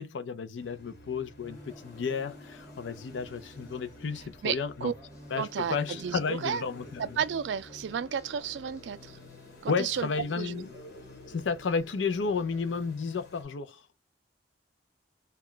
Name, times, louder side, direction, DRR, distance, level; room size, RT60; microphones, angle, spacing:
voice 1, 0.0-4.9 5.3-7.2 9.7-10.7 11.3-13.8, left 5 dB, 85° left, 0.5 m, -32 dB
sound 1, 0.6-13.4, left 2 dB, 60° left, 1.1 m, -52 dB
sound 2, 1.4-13.0, equal, 15° left, 0.8 m, -52 dB
voice 2, 4.4-4.9 5.4-6.6 7.0-9.0 9.6-10.1 10.4-10.5, right 7 dB, 75° right, 0.4 m, -32 dB
2.3 x 2.1 x 3.7 m
head